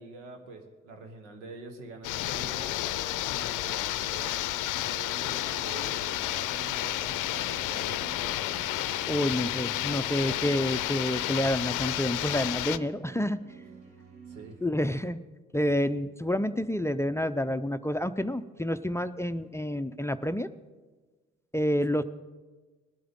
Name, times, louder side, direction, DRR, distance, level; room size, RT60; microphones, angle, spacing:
voice 1, 0.0-2.7 3.3-8.5 13.9-14.6 21.9-22.0, right 2 dB, 85° right, 5 dB, 1.3 m, -46 dB
sound 1, 2.0-12.8, left 14 dB, 60° left, 0.6 m, -31 dB
sound 2, 5.3-14.6, right 5 dB, 55° right, 3.9 m, -50 dB
voice 2, 8.9-13.4 14.6-15.2 15.5-20.5 21.5-22.0, left 1 dB, 10° left, 14 dB, 0.5 m, -29 dB
19.5 x 12.0 x 3.7 m, 1.3 s
hypercardioid pair, 40°, 35 cm